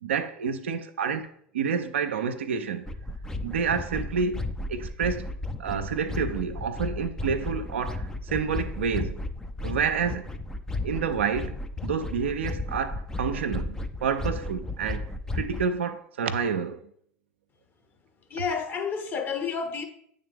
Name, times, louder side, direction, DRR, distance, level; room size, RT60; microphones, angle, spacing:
voice 1, 0.0-1.3 1.5-2.9 3.4-4.4 4.7-5.3 5.6-9.2 9.6-10.3 10.8-11.6 11.8-15.1 15.3-16.9, right 6 dB, 75° right, 0.4 m, -29 dB
sound 1, 2.9-15.7, left 2 dB, 10° left, 0.4 m, -34 dB
voice 2, 18.3-19.8, left 6 dB, 30° left, 0.9 m, -30 dB
8.6 x 3.5 x 3.5 m
figure-of-eight pair, 75°, 6 cm